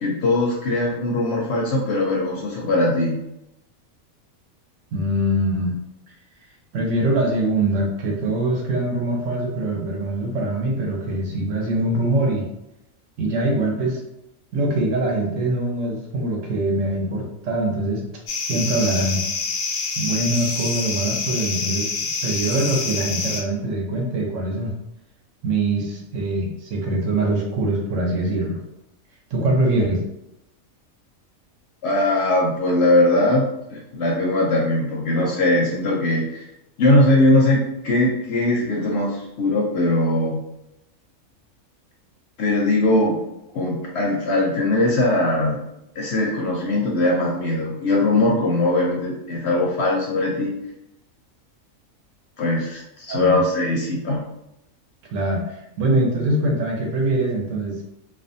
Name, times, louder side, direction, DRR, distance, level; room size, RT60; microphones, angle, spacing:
voice 1, 0.0-3.2 31.8-36.4 36.8-40.4 42.4-43.2 43.5-45.6 46.0-50.6 52.4-54.2, left 1 dB, 65° left, -2 dB, 0.7 m, -20 dB
voice 2, 4.9-5.7 6.7-12.5 13.2-14.0 14.5-18.0 18.5-19.2 20.0-21.9 22.2-24.7 25.4-28.6 29.3-30.0 53.1-53.4 55.1-57.8, right 1 dB, 70° right, 0 dB, 0.9 m, -23 dB
sound 1, 18.3-23.4, left 4 dB, 90° left, 1.0 m, -26 dB
2.5 x 2.2 x 2.5 m, 0.85 s
omnidirectional pair, 1.4 m